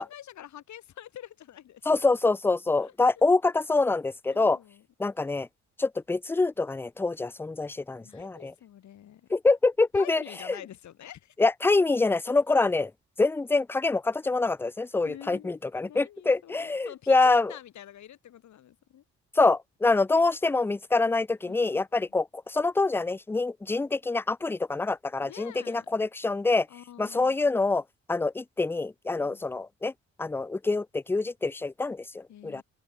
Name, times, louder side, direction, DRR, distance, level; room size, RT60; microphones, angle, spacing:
voice 1, 0.0-1.8 2.8-2.9 4.3-4.8 8.0-9.3 9.9-11.3 15.0-19.0 21.4-22.1 25.2-25.9 26.7-27.3 29.2-29.5 32.3-32.6, left 11 dB, 70° left, 3.3 m, -47 dB
voice 2, 1.9-4.6 5.0-5.5 5.8-8.5 9.3-10.6 11.4-12.9 13.2-17.5 19.3-26.7 27.0-27.8 28.1-29.9 30.2-32.6, left 3 dB, 10° left, 0.4 m, -25 dB
open air
cardioid pair, 90°, 30 cm